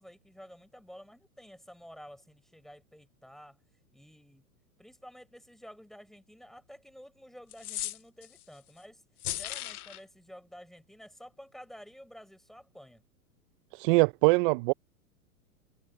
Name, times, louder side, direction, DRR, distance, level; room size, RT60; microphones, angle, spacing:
voice 1, 0.0-3.6 3.9-4.4 4.8-9.0 9.3-13.0, equal, ahead, 4.0 m, -51 dB
sound 1, 7.5-8.4 9.2-10.0, left 14 dB, 80° left, 0.6 m, -36 dB
voice 2, 13.7-14.7, right 25 dB, 40° right, 0.5 m, -23 dB
hypercardioid pair, 105°, 45 cm